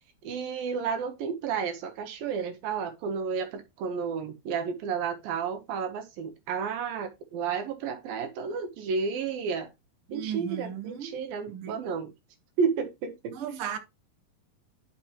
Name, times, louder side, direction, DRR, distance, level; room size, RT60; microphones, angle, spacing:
voice 1, 0.2-9.7 10.1-12.1 12.6-13.3, right 6 dB, 70° right, 2.8 m, -31 dB
voice 2, 10.1-11.1 11.5-11.8 13.3-13.8, right 9 dB, 55° right, 1.6 m, -35 dB
10.0 x 6.0 x 3.1 m
omnidirectional pair, 4.5 m